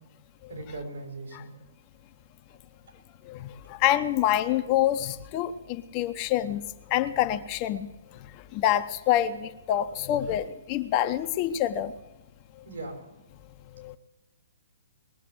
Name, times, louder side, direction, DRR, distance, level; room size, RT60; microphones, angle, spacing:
voice 1, 0.5-1.5 12.6-13.0, right 2 dB, 75° right, 2 dB, 5.5 m, -38 dB
voice 2, 3.2-6.6 6.9-7.9 8.3-11.9 13.7-14.0, left 12 dB, 30° left, 9 dB, 0.8 m, -27 dB
20.5 x 7.5 x 7.9 m, 1.0 s
figure-of-eight pair, 130°, 0 cm